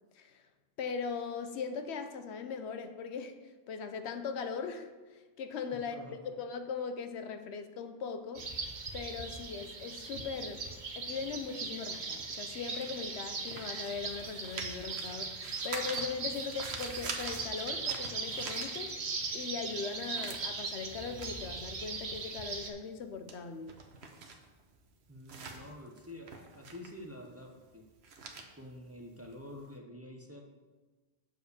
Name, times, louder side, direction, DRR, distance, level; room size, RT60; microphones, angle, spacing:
voice 1, 0.8-3.4 3.7-6.0 6.3-8.5 8.9-10.7 11.0-18.9 19.3-23.7, left 5 dB, 80° left, 8 dB, 0.9 m, -39 dB
voice 2, 5.7-6.3 25.1-27.8 28.5-30.4, left 1 dB, 15° right, 1 dB, 0.7 m, -48 dB
sound 1, 8.3-22.7, right 4 dB, 45° right, 0.9 m, -39 dB
sound 2, 11.5-19.3 19.6-29.7, right 4 dB, 75° right, 1.2 m, -46 dB
7.1 x 4.6 x 6.8 m, 1.3 s
omnidirectional pair, 1.1 m